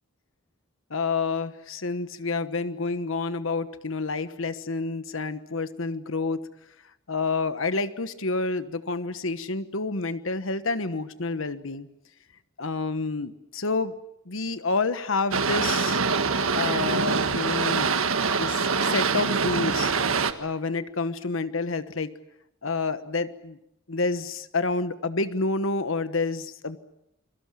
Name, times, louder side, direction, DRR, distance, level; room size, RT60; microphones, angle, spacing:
voice 1, 0.9-6.4 7.1-11.9 12.6-13.9 14.3-16.0 16.5-17.9 18.3-19.9 20.4-22.1 22.6-23.6 23.9-26.8, left 3 dB, 70° left, 12 dB, 1.2 m, -29 dB
Boat Water vehicle, 15.3-20.3, right 5 dB, 80° right, 1.6 m, -24 dB
29.0 x 23.0 x 7.5 m, 0.82 s
head